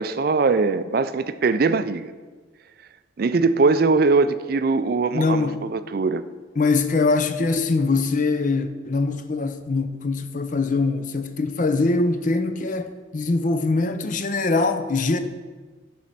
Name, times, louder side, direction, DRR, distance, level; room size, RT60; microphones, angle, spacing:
voice 1, 0.0-2.1 3.2-6.2, right 4 dB, 50° right, 0.4 m, -21 dB
voice 2, 5.1-5.6 6.6-15.2, left 3 dB, 40° left, 0.5 m, -23 dB
11.0 x 4.2 x 5.7 m
head